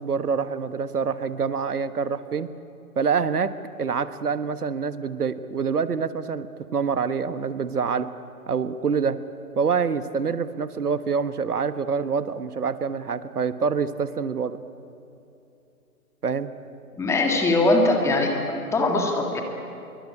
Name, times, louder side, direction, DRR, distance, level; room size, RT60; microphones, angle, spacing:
voice 1, 0.0-2.5 2.9-3.5 3.8-6.5 6.7-8.1 8.5-9.2 9.6-14.6 16.2-16.5, right 6 dB, 75° right, 12 dB, 1.5 m, -26 dB
voice 2, 17.0-18.4 18.7-19.4, left 2 dB, 5° left, 2 dB, 1.8 m, -21 dB
26.0 x 23.5 x 8.6 m, 2.8 s
hypercardioid pair, 150°, 46 cm